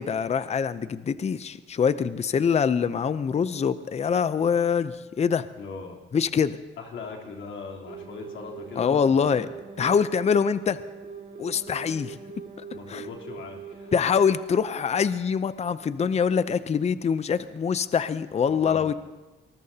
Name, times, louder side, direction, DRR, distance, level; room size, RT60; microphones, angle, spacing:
voice 1, 0.0-5.5 6.1-6.6 8.8-9.5 9.8-10.8 11.4-12.2 12.9-13.1 13.9-18.9, left 6 dB, 35° left, 14 dB, 0.6 m, -24 dB
voice 2, 5.6-6.0 6.8-9.5 12.7-13.9 18.5-18.9, left 4 dB, 70° left, -1 dB, 3.5 m, -39 dB
sound 1, 7.9-14.4 16.2-16.4, right 5 dB, 45° right, 3.2 m, -42 dB
25.0 x 20.0 x 2.8 m, 1.2 s
cardioid pair, 90°, 20 cm